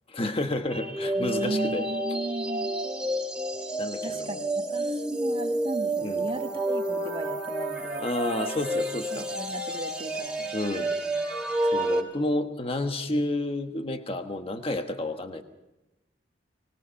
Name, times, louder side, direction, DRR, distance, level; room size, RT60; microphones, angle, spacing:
voice 1, 0.1-1.9 3.8-4.5 6.0-6.3 8.0-9.3 10.5-10.9 11.7-15.4, left 1 dB, 30° left, 6 dB, 1.4 m, -30 dB
sound 1, 0.7-12.0, right 1 dB, 5° right, 3.4 m, -30 dB
voice 2, 1.1-2.7 4.0-8.1 9.1-10.5 10.8-11.1, right 1 dB, 30° right, 6 dB, 1.5 m, -36 dB
24.5 x 20.5 x 5.8 m, 0.96 s
head